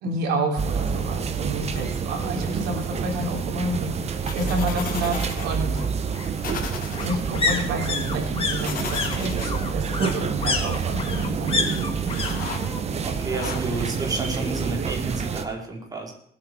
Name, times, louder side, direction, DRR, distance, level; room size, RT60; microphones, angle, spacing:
voice 1, 0.0-5.8 7.0-11.7 13.6-13.9, right 1 dB, 90° right, 1 dB, 3.7 m, -29 dB
sound 1, 0.6-15.5, right 6 dB, 40° right, 1.3 m, -28 dB
sound 2, 1.4-1.5 1.9-2.0 2.2-3.2 4.5-12.3 12.6-13.1 13.4-14.4 14.7-14.8, left 4 dB, 35° left, 2.3 m, -30 dB
sound 3, 1.8-2.2 4.2-5.5 5.8-5.9 6.4-7.1 8.6-9.5 11.0-11.1 11.5-12.6 13.3-14.1, left 7 dB, 55° left, 2.5 m, -36 dB
voice 2, 13.0-16.1, right 3 dB, 20° right, -1 dB, 4.4 m, -30 dB
20.5 x 8.5 x 4.7 m, 0.69 s
cardioid pair, 110°, 17 cm